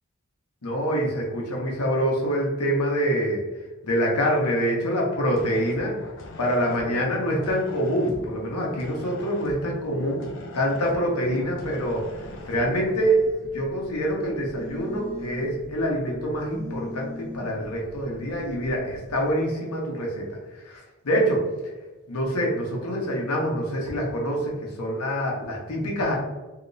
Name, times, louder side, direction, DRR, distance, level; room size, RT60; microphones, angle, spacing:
voice 1, 0.6-3.4 3.8-6.0 6.4-10.3 10.5-12.0 12.5-20.2 20.5-21.4 22.1-26.2, equal, 90° left, -1 dB, 0.9 m, -25 dB
sound 1, 5.3-12.9, left 2 dB, 55° left, 0.4 m, -42 dB
Telephone, 11.3-19.3, equal, 5° left, 0.7 m, -42 dB
3.0 x 2.9 x 2.6 m, 1.2 s
head